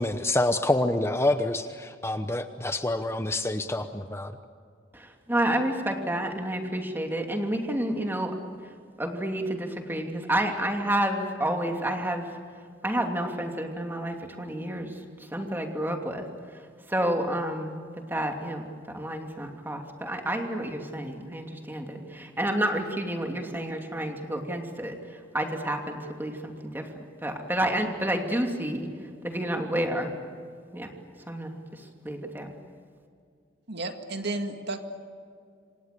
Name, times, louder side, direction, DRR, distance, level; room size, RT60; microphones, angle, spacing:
voice 1, 0.0-4.3, left 1 dB, 15° left, 8 dB, 0.9 m, -27 dB
voice 2, 4.9-8.4 9.0-12.3 12.8-14.9 15.3-16.3 16.9-17.8 18.1-25.0 25.3-26.8 27.2-28.9 29.2-30.1 30.7-30.9 31.3-32.5, right 1 dB, 10° right, 3 dB, 2.9 m, -30 dB
voice 3, 33.7-34.8, right 2 dB, 65° right, 6 dB, 2.1 m, -32 dB
28.0 x 26.0 x 6.9 m, 2.3 s
head